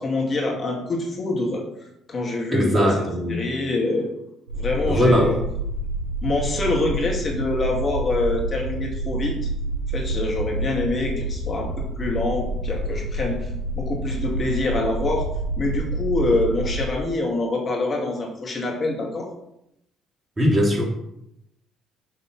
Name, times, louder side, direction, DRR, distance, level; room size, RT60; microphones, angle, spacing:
voice 1, 0.0-1.6 2.1-2.9 3.3-4.1 4.5-5.4 6.2-9.5 9.9-13.5 13.8-15.3 15.6-19.3, left 2 dB, 40° left, 0 dB, 2.3 m, -25 dB
voice 2, 2.5-3.4 4.9-5.4 20.4-21.0, equal, 25° right, -1 dB, 3.4 m, -20 dB
sound 1, 4.5-16.8, right 1 dB, 80° right, 2.8 m, -28 dB
6.8 x 6.6 x 5.5 m, 0.81 s
hypercardioid pair, 50°, 0 cm